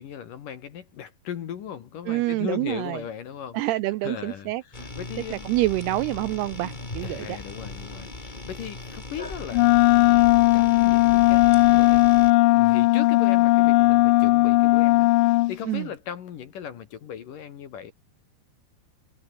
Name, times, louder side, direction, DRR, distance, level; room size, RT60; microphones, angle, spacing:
voice 1, 0.0-3.6 4.0-5.5 7.0-12.1 12.5-17.9, left 9 dB, 55° left, 2.7 m, -37 dB
voice 2, 2.1-3.0 3.5-4.6 5.3-7.4 15.7-15.9, right 18 dB, 85° right, 2.3 m, -27 dB
sound 1, 4.7-12.3, left 2 dB, 15° left, 1.6 m, -38 dB
Wind instrument woodwind instrument, 9.5-15.6, left 20 dB, 90° left, 3.1 m, -18 dB
omnidirectional pair, 5.4 m